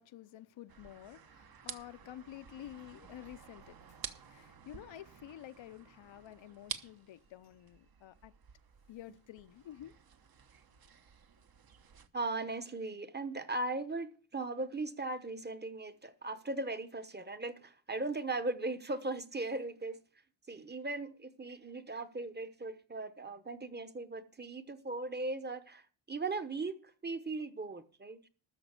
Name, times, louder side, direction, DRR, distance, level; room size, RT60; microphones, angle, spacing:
voice 1, 0.0-8.3 8.9-9.9, left 12 dB, 70° left, 0.8 m, -50 dB
sound 1, 0.7-12.1, right 7 dB, 50° right, 1.1 m, -51 dB
voice 2, 12.1-20.0 20.5-28.2, right 2 dB, 20° right, 1.0 m, -38 dB
13.0 x 5.2 x 8.2 m
cardioid pair, 115°, 46 cm